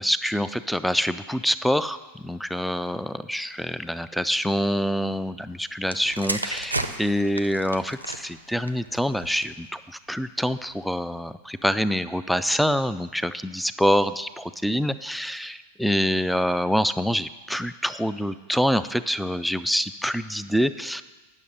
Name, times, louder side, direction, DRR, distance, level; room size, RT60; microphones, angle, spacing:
voice 1, 0.0-9.8 10.1-21.0, equal, ahead, 13 dB, 0.3 m, -26 dB
sound 1, 5.8-9.7 10.5-10.7, right 2 dB, 85° right, 0.5 m, -33 dB
9.5 x 6.3 x 5.3 m, 1.3 s
figure-of-eight pair, 90°, 0 cm